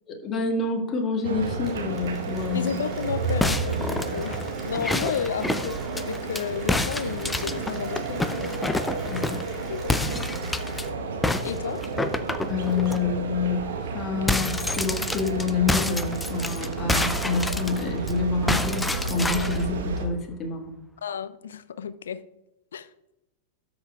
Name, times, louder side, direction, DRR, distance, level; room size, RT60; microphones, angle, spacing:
voice 1, 0.1-2.7 9.1-9.4 12.5-13.6 13.9-20.7, left 4 dB, 30° left, 2 dB, 1.9 m, -27 dB
Applause, 1.2-10.9, right 3 dB, 30° right, 3.0 m, -46 dB
sound 1, 1.2-20.1, right 3 dB, 65° right, 1.2 m, -31 dB
voice 2, 2.5-8.6 9.7-9.9 11.4-11.8 21.0-22.2 22.7-22.9, left 7 dB, 70° left, 15 dB, 0.5 m, -32 dB
sound 2, 3.4-6.4 6.7-9.5 9.9-10.8 11.2-13.0 13.4-13.5 13.8-18.1 18.5-19.6, left 2 dB, 10° left, 0.5 m, -28 dB
13.0 x 7.0 x 2.4 m, 0.89 s
figure-of-eight pair, 95°, 0 cm